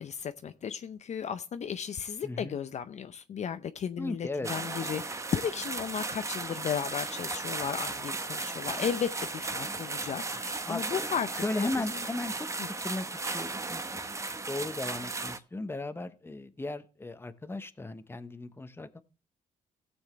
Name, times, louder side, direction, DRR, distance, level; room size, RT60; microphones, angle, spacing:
voice 1, 0.0-11.4 12.6-12.7, left 7 dB, 50° left, 0.6 m, -35 dB
voice 2, 2.2-2.6 4.0-4.5 10.7-11.1 11.4-14.1 14.5-19.0, left 2 dB, 15° left, 1.0 m, -36 dB
sound 1, 4.4-15.4, right 3 dB, 20° right, 0.9 m, -36 dB
16.5 x 7.2 x 3.2 m
cardioid pair, 95°, 15 cm